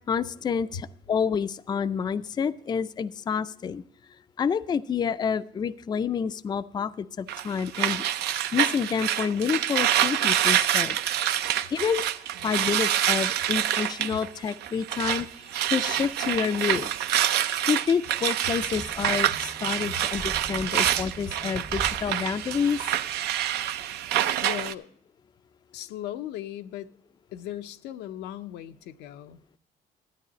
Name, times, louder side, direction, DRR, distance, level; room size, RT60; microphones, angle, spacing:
voice 1, 0.1-3.8 4.4-8.1 8.5-11.0 11.7-12.1 12.4-15.3 15.7-16.9 17.7-22.8, left 6 dB, 25° left, 0.4 m, -28 dB
sound 1, 7.3-15.2 15.5-24.7, right 11 dB, 75° right, 0.6 m, -26 dB
sound 2, 18.5-23.4, right 2 dB, 15° right, 0.7 m, -43 dB
voice 2, 24.4-24.9 25.7-26.9 27.3-29.4, left 11 dB, 85° left, 0.6 m, -37 dB
13.0 x 9.1 x 4.0 m
cardioid pair, 110°, 17 cm